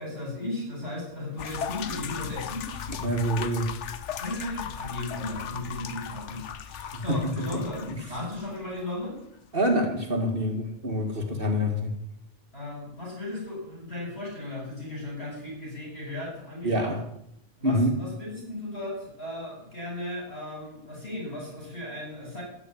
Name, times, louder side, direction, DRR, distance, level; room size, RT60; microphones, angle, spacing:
voice 1, 0.0-2.9 4.2-9.2 12.5-17.0 17.6-22.4, left 1 dB, 55° left, -4 dB, 8.2 m, -36 dB
sound 1, 1.4-8.9, left 8 dB, 75° left, 1.1 m, -37 dB
voice 2, 2.9-3.7 6.8-7.2 7.9-8.0 9.5-11.9 16.6-17.0 17.6-17.9, equal, 50° right, 3 dB, 2.2 m, -26 dB
14.5 x 6.4 x 9.9 m, 0.77 s
omnidirectional pair, 1.2 m